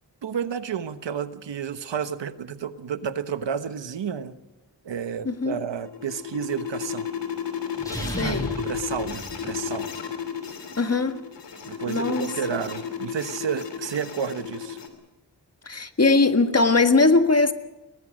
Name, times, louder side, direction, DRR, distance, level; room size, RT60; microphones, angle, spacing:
voice 1, 0.2-4.3 4.8-7.1 8.1-9.9 11.7-14.8, right 7 dB, 85° right, 1.2 m, -31 dB
voice 2, 5.3-5.6 8.1-8.5 10.8-11.2 11.9-12.3 15.7-17.5, left 3 dB, 35° left, 1.7 m, -20 dB
sound 1, 5.5-14.9, left 8 dB, 80° left, 3.0 m, -33 dB
sound 2, 7.8-9.9, equal, 10° left, 7.6 m, -34 dB
23.0 x 19.5 x 6.4 m
cardioid pair, 55°, 42 cm